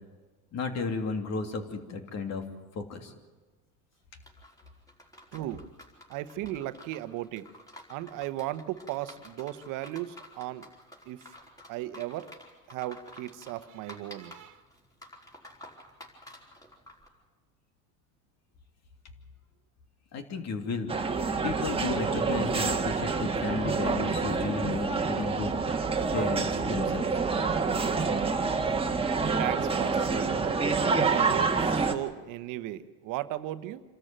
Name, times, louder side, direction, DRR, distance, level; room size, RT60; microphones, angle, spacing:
voice 1, 0.5-2.4 2.7-3.1 20.1-20.9 21.4-25.5 26.1-27.1, left 4 dB, 50° left, 6 dB, 2.9 m, -33 dB
sound 1, 4.2-17.1, left 1 dB, 10° left, 4.7 m, -51 dB
voice 2, 5.3-5.6 6.1-7.5 7.9-10.7 11.0-11.3 11.7-12.3 12.7-14.6 29.4-30.6 31.1-33.8, right 14 dB, 65° right, 12 dB, 1.1 m, -36 dB
sound 2, 20.9-31.9, right 4 dB, 15° right, 1.6 m, -27 dB
27.0 x 13.5 x 9.0 m, 1.3 s
supercardioid pair, 115°, 33 cm